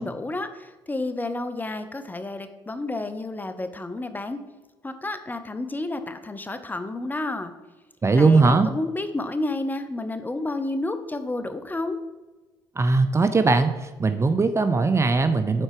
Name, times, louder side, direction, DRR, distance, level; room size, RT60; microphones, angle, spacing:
voice 1, 0.0-4.4 4.8-7.5 8.2-12.0, left 2 dB, 15° left, 9 dB, 0.8 m, -30 dB
voice 2, 8.0-8.7 12.8-13.7 14.0-15.6, right 3 dB, 25° right, 10 dB, 0.6 m, -19 dB
7.6 x 4.4 x 4.8 m, 1.2 s
hypercardioid pair, 55°, 11 cm